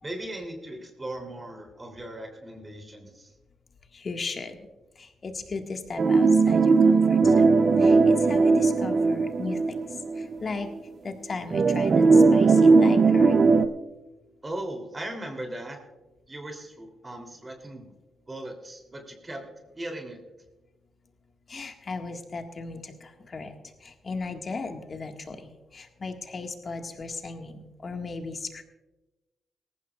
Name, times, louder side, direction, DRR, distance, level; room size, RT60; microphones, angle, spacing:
voice 1, 0.0-3.3 14.4-15.8 16.3-17.9 18.3-20.2, right 1 dB, 25° right, 4 dB, 3.3 m, -38 dB
voice 2, 3.9-4.6 5.0-7.5 7.8-9.8 10.2-10.7 11.0-13.4 21.5-23.5 23.8-28.6, left 4 dB, 45° left, 4 dB, 1.8 m, -36 dB
sound 1, 6.0-10.3 10.7-10.8 11.5-13.7, right 4 dB, 55° right, 0.7 m, -19 dB
18.5 x 15.0 x 2.5 m, 1.1 s
supercardioid pair, 55°, 0 cm